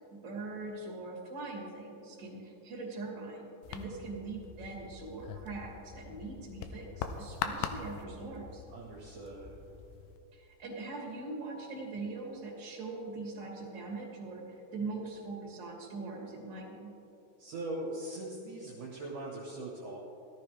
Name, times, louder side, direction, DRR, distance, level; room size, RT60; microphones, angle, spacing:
voice 1, 0.1-8.6 10.3-16.9, right 3 dB, 30° right, -2 dB, 2.7 m, -42 dB
sound 1, 3.6-10.2, left 7 dB, 90° left, 2.8 m, -42 dB
voice 2, 8.7-9.5 17.4-20.0, right 1 dB, 60° right, -3 dB, 2.5 m, -41 dB
17.0 x 13.5 x 3.4 m, 2.8 s
omnidirectional pair, 4.9 m